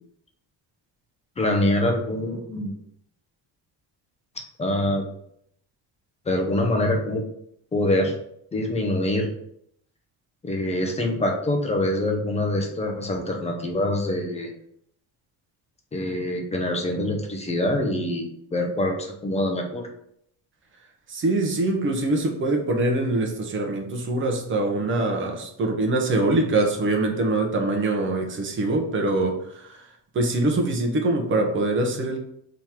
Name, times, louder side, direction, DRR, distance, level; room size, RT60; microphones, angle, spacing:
voice 1, 1.4-2.8 4.6-5.1 6.3-7.2 7.7-8.1 8.5-9.3 10.4-14.5 15.9-19.9, left 1 dB, 15° left, 2 dB, 0.4 m, -25 dB
voice 2, 21.1-32.2, right 2 dB, 30° right, 2 dB, 0.7 m, -24 dB
3.7 x 2.9 x 4.6 m, 0.71 s
cardioid pair, 170°, 43 cm